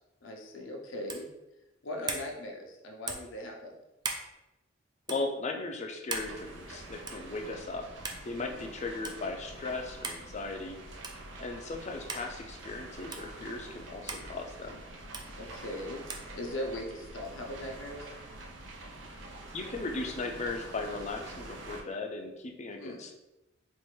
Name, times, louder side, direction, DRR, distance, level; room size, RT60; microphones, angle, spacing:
voice 1, 0.2-1.3 1.8-3.7 8.3-8.7 15.4-18.1 22.8-23.0, left 1 dB, 90° left, 0 dB, 0.7 m, -40 dB
sound 1, 1.1-1.3 2.1-2.3 3.1-3.3 4.0-4.3 5.0-5.2 6.1-6.3 7.1-7.3 8.0-8.2 9.0-9.2 10.0-10.2 11.0-11.2 12.1-12.3 13.1-13.3 14.1-14.3 15.1-15.3 16.1-16.3, right 4 dB, 20° right, 0.4 m, -37 dB
voice 2, 5.1-7.9 8.3-10.8 11.4-14.8 19.5-23.1, left 3 dB, 35° left, 3 dB, 0.5 m, -37 dB
sound 2, 6.1-21.8, right 2 dB, 75° right, 0.6 m, -46 dB
4.3 x 2.5 x 3.2 m, 0.97 s
head